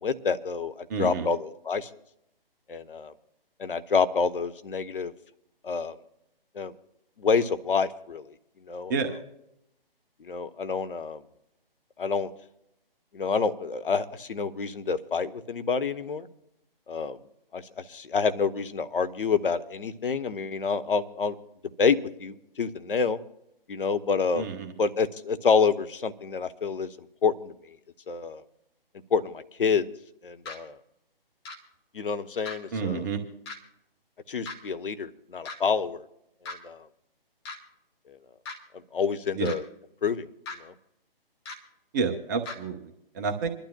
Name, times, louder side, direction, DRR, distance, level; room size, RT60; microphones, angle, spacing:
voice 1, 0.0-1.9 2.7-3.1 3.6-5.1 5.6-5.9 6.6-6.7 7.2-8.2 8.7-8.9 10.3-11.2 12.0-12.3 13.1-16.3 16.9-17.2 17.5-17.6 17.9-21.4 21.8-23.2 23.7-24.5 24.8-26.9 27.2-27.5 28.1-28.4 29.1-29.9 30.2-30.8 31.9-33.0 34.3-36.0 36.6-36.8 38.9-39.6 40.0-40.2 40.6-40.7, left 5 dB, 65° left, 11 dB, 1.0 m, -27 dB
voice 2, 0.9-1.3 8.9-9.1 24.4-24.7 32.7-33.2 39.3-39.5 41.9-43.5, right 5 dB, 20° right, 4 dB, 0.8 m, -29 dB
sound 1, 30.5-30.6 31.4-31.6 32.5-32.6 33.5-33.6 34.5-34.6 35.4-35.6 36.5-36.6 37.4-37.6 38.5-38.6 39.4-39.6 40.5-40.6 41.5-41.6 42.5-42.6, left 3 dB, 25° left, 1.5 m, -37 dB
27.0 x 12.0 x 2.3 m, 0.80 s
figure-of-eight pair, 140°, 30 cm